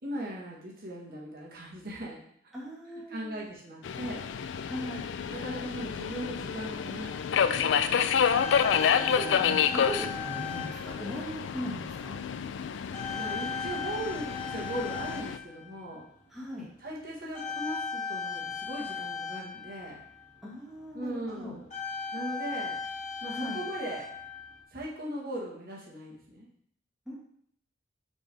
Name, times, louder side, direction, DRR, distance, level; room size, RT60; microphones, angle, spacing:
voice 1, 0.0-2.2 3.1-4.2 5.3-7.9 13.1-16.0 16.8-20.0 20.9-21.6 22.1-22.8 23.2-24.1 24.7-26.5, right 1 dB, 50° right, -4 dB, 1.5 m, -39 dB
voice 2, 2.5-3.4 4.6-5.1 8.6-12.2 16.3-16.7 20.4-21.5 23.2-23.6 27.1-27.2, equal, ahead, -6 dB, 1.2 m, -39 dB
Subway metro underground, 3.8-15.4, left 7 dB, 70° left, 0.3 m, -29 dB
sound 1, 8.2-11.6 12.2-12.4 12.9-16.2 17.3-20.4 21.1-21.2 21.5-24.6, left 5 dB, 35° left, 1.4 m, -37 dB
6.0 x 3.5 x 5.3 m, 0.67 s
head